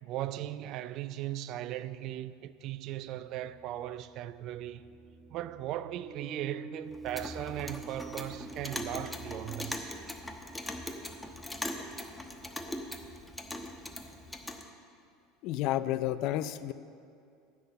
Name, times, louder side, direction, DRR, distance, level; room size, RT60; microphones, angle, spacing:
voice 1, 0.0-4.8 5.3-9.9, right 13 dB, 55° right, 0.4 m, -38 dB
sound 1, 3.0-9.8, right 4 dB, 35° right, 0.8 m, -49 dB
Clock, 6.9-14.6, left 1 dB, 10° left, 1.0 m, -40 dB
voice 2, 15.4-16.7, left 13 dB, 60° left, 0.4 m, -31 dB
9.1 x 6.2 x 8.3 m
hypercardioid pair, 80°, 0 cm